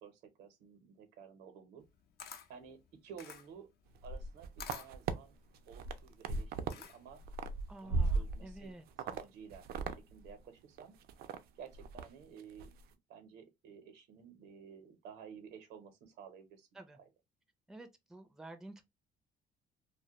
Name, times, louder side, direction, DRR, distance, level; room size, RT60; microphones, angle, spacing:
voice 1, 0.0-1.9 2.5-3.7 4.0-5.3 5.7-7.2 7.8-8.7 9.0-9.7 10.1-10.9 11.5-12.7 13.1-16.7, right 7 dB, 85° right, 0.8 m, -53 dB
Camera, 1.8-7.3, left 8 dB, 65° left, 0.5 m, -51 dB
sound 1, 3.9-5.1 5.6-6.8 7.1-8.6 9.0-9.2 9.5-10.0 10.2-10.3 10.8-11.4 11.7-12.1 12.4-12.7, right 4 dB, 65° right, 0.4 m, -36 dB
voice 2, 7.7-8.9 16.7-17.0 17.7-18.8, right 2 dB, 5° right, 0.4 m, -50 dB
2.2 x 2.1 x 2.8 m
cardioid pair, 110°, 17 cm